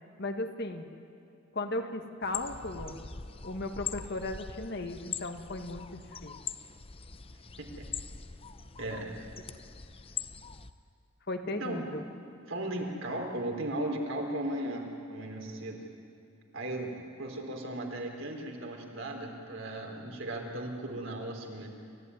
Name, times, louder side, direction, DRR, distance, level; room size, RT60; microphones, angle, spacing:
voice 1, 0.2-0.9 1.5-3.0 3.4-6.4 11.3-12.0, left 2 dB, 50° left, 6 dB, 1.6 m, -36 dB
sound 1, 2.2-10.7, left 6 dB, 25° left, 0.7 m, -42 dB
voice 2, 8.8-9.1 11.6-11.9 12.5-15.8 16.5-21.7, right 1 dB, 65° right, 1 dB, 3.8 m, -36 dB
29.0 x 14.5 x 9.8 m, 2.5 s
head